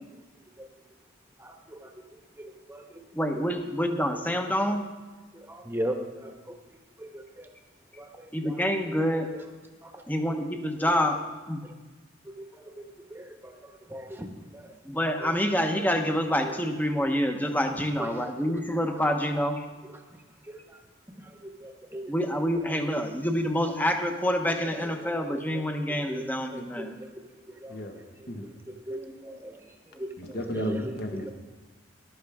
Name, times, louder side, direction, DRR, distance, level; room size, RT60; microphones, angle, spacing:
voice 1, 1.4-1.9 2.4-3.0 5.3-6.6 7.0-7.5 8.0-8.1 8.4-8.5 9.8-10.0 11.6-11.7 13.1-13.5 13.9-14.3 14.5-14.7 15.2-15.4 17.4-17.5 18.0-18.1 20.5-20.8 21.6-22.1 24.7-25.6 26.1-27.1 27.6-27.8 28.7-29.6 29.9-30.9 31.2-31.3, right 1 dB, 10° right, 4 dB, 1.1 m, -38 dB
voice 2, 3.1-4.8 8.3-9.3 10.1-11.2 11.5-11.6 14.9-19.6 22.1-26.9, equal, 10° left, 5 dB, 0.9 m, -27 dB
voice 3, 30.2-31.3, left 1 dB, 60° left, 4 dB, 1.4 m, -34 dB
14.0 x 11.5 x 3.5 m, 1.3 s
head